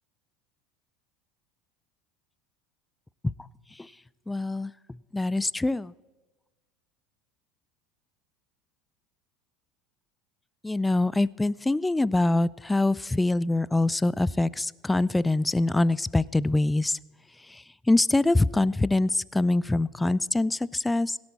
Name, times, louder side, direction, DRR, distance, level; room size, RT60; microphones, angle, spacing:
voice 1, 4.3-4.7 5.1-5.9 10.6-17.0 17.5-21.2, left 2 dB, 10° left, 22 dB, 0.3 m, -24 dB
17.0 x 10.5 x 4.2 m, 1.2 s
hypercardioid pair, 80°, 0 cm